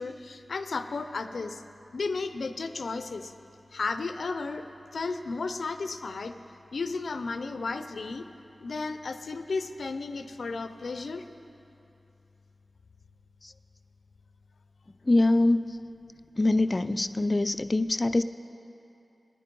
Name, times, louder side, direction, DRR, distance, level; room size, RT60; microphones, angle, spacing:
voice 1, 0.0-1.6 1.9-3.3 3.7-4.7 4.9-6.3 6.7-8.2 8.6-11.2 16.1-16.2, left 3 dB, 90° left, 9 dB, 0.5 m, -33 dB
voice 2, 15.1-15.6 16.4-18.2, left 2 dB, 40° left, 12 dB, 0.4 m, -23 dB
17.5 x 9.9 x 5.3 m, 2.8 s
cardioid pair, 45°, 0 cm